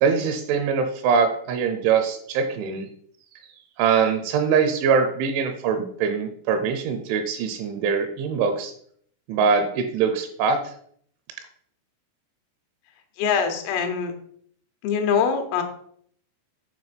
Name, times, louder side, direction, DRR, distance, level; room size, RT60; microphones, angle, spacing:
voice 1, 0.0-2.9 3.8-8.7 9.3-10.7, right 6 dB, 80° right, 7 dB, 3.0 m, -23 dB
voice 2, 13.2-14.1 14.8-15.6, left 6 dB, 90° left, 6 dB, 3.7 m, -23 dB
8.9 x 3.4 x 5.8 m, 0.63 s
omnidirectional pair, 5.7 m